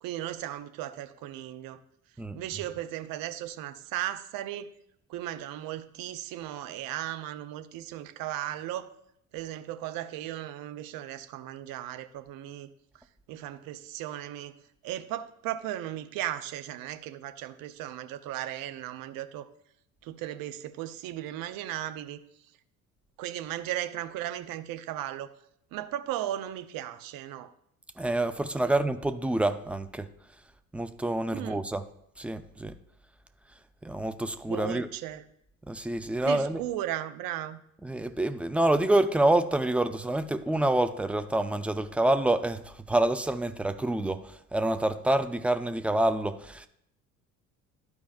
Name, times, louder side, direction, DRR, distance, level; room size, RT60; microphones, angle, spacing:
voice 1, 0.0-1.8 2.3-4.7 5.1-8.9 9.3-12.7 13.3-14.6 14.8-19.5 20.0-22.2 23.2-25.3 25.7-27.5 28.6-28.8 31.3-31.6 34.5-35.2 36.2-37.6, right 12 dB, 55° right, 0.7 m, -36 dB
voice 2, 2.2-2.6 28.0-30.1 30.7-31.9 32.2-32.8 33.8-34.9 35.7-36.6 37.8-46.7, right 1 dB, 5° right, 0.4 m, -27 dB
12.5 x 4.8 x 2.4 m
hypercardioid pair, 60°, 42 cm